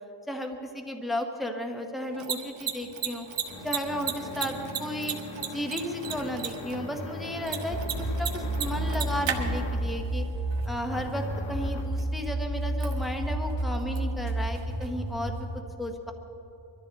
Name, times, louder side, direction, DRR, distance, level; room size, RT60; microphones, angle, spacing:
voice 1, 0.3-3.3 3.6-5.2 5.5-10.3 10.7-15.5 15.8-16.1, left 1 dB, ahead, 4 dB, 0.9 m, -34 dB
Mechanisms, 2.0-15.6, right 7 dB, 65° right, 1.5 m, -38 dB
sound 1, 2.8-10.0 10.9-12.0, left 2 dB, 80° left, 1.6 m, -40 dB
sound 2, 7.7-15.4, right 1 dB, 20° left, 1.9 m, -31 dB
22.5 x 14.0 x 4.0 m, 2.9 s
wide cardioid pair, 155°, 47 cm